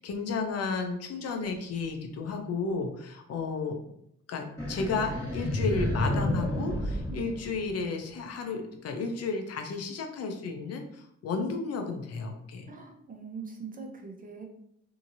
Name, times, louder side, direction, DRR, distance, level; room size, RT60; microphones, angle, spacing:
voice 1, 0.0-3.8 4.3-12.7, left 4 dB, 55° left, 5 dB, 0.6 m, -33 dB
sound 1, 4.6-8.0, left 1 dB, 10° left, 1.4 m, -30 dB
voice 2, 12.7-14.4, right 5 dB, 30° right, 1 dB, 0.7 m, -42 dB
2.8 x 2.7 x 2.6 m, 0.73 s
cardioid pair, 90°, 30 cm